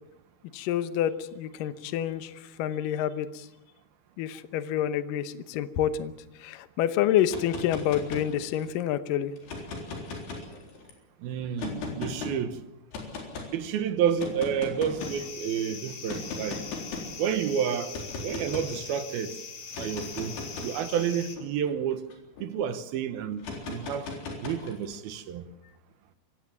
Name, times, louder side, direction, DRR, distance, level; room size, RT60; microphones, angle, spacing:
voice 1, 0.5-3.5 4.2-6.1 6.4-9.3, left 10 dB, 70° left, 2.4 m, -28 dB
sound 1, 7.2-8.7 9.4-10.9 11.6-12.3 12.9-13.5 14.2-15.3 16.1-17.2 17.9-18.8 19.6-22.5 23.4-25.0, left 3 dB, 85° left, 5.9 m, -38 dB
voice 2, 11.2-12.6 13.5-16.7 17.2-19.4 19.8-20.4 20.6-22.0 22.4-24.1 24.4-25.5, right 8 dB, 75° right, 2.9 m, -30 dB
sound 2, 15.0-21.4, left 5 dB, 45° left, 3.4 m, -42 dB
26.5 x 16.5 x 7.5 m
omnidirectional pair, 4.6 m